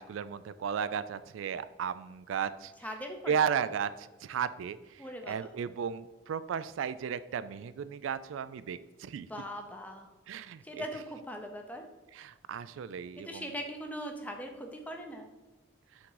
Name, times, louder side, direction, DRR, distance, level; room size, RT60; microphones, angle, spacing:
voice 1, 0.0-2.7 3.3-9.3 10.3-10.8 12.1-13.5, right 7 dB, 85° right, 15 dB, 0.3 m, -35 dB
voice 2, 2.8-3.4 5.0-5.4 9.2-10.1 10.6-11.9 13.2-15.3, equal, 10° left, 4 dB, 0.7 m, -40 dB
5.9 x 3.8 x 4.7 m, 1.2 s
head